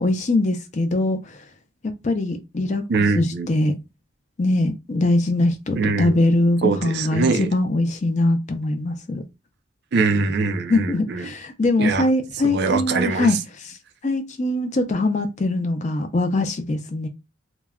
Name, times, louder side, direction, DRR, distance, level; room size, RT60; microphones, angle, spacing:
voice 1, 0.0-1.4 2.0-2.8 3.1-3.7 4.4-9.2 10.7-13.8 14.0-17.1, left 2 dB, 35° left, 0.4 m, -22 dB
voice 2, 2.9-3.5 5.8-6.2 6.6-7.5 9.9-11.3 11.8-12.1 12.4-13.4, right 4 dB, 50° right, 0.3 m, -22 dB
2.2 x 2.1 x 3.4 m
head